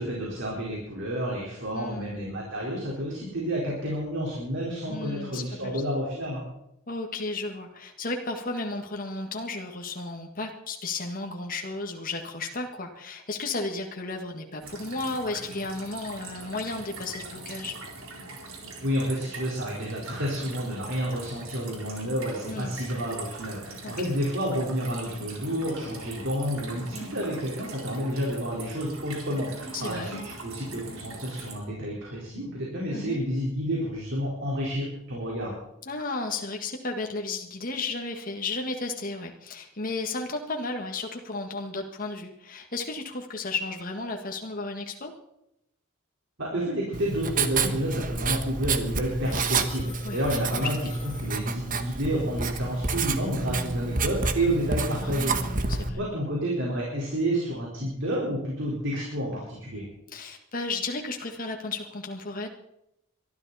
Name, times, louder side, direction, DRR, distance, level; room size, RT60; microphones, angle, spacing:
voice 1, 0.0-6.4 18.8-35.5 46.4-50.8 51.0-59.9, equal, 60° right, -3 dB, 4.4 m, -30 dB
voice 2, 1.7-2.2 4.9-5.8 6.9-17.8 22.5-22.7 23.8-24.1 26.9-27.1 29.7-30.1 32.9-33.2 35.8-45.1 50.0-50.2 50.5-50.7 55.0-56.0 60.1-62.5, left 3 dB, 40° left, 2 dB, 1.6 m, -34 dB
sound 1, 14.6-31.5, right 3 dB, 75° right, 4.0 m, -42 dB
Writing, 46.9-55.9, right 4 dB, 40° right, 1.3 m, -29 dB
Telephone, 49.2-51.9, left 4 dB, 25° left, 7.7 m, -46 dB
23.0 x 13.0 x 4.2 m, 0.82 s
head